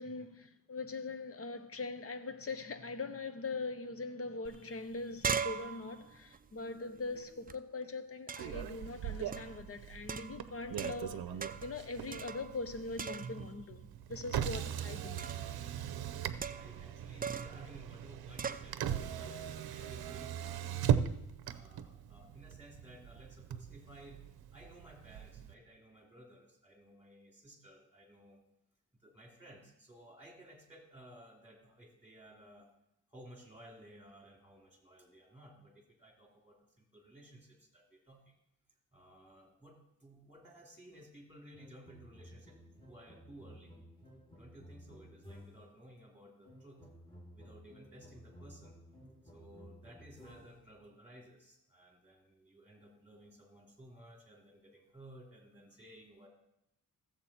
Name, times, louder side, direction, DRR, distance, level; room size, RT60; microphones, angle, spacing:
voice 1, 0.0-11.3 11.6-13.8 14.1-15.3, left 3 dB, 40° left, 0.9 m, -42 dB
sound 1, 4.5-4.6 4.8-7.6 8.3-8.7 9.3-9.6 10.1-11.1 11.4-11.8 12.1-12.7 13.0-13.6 15.2-15.5 16.4-16.8 17.2-17.6 18.4-18.7, right 6 dB, 25° right, 0.4 m, -40 dB
Motor vehicle (road), 8.4-25.5, right 9 dB, 85° right, 0.7 m, -39 dB
voice 2, 14.4-14.8 16.2-21.0 21.4-28.4 28.9-32.7 33.1-38.3 38.9-42.6 42.8-43.7 44.4-46.9 47.3-48.7 49.2-56.3, right 1 dB, 5° right, 2.9 m, -56 dB
sound 2, 41.5-45.8 46.4-50.7, equal, 15° left, 2.4 m, -55 dB
15.0 x 7.5 x 4.3 m
cardioid pair, 100°, 36 cm